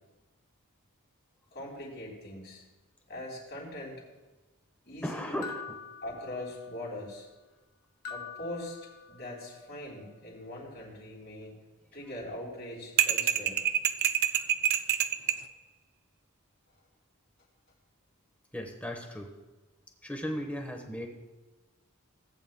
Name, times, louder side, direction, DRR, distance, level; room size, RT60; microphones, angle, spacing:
voice 1, 1.5-2.6 3.1-4.0 4.8-5.4 6.0-7.3 8.1-8.8 9.1-11.6 11.9-13.6 15.3-15.4, left 1 dB, 45° left, -4 dB, 3.4 m, -41 dB
voice 2, 5.0-5.8 18.5-19.3 20.0-21.1, equal, 5° left, 3 dB, 1.0 m, -36 dB
sound 1, 5.4-6.9 8.0-9.5, left 6 dB, 85° left, 1.1 m, -45 dB
sound 2, 13.0-15.4, right 10 dB, 45° right, 0.4 m, -26 dB
18.0 x 9.0 x 2.2 m, 1.2 s
head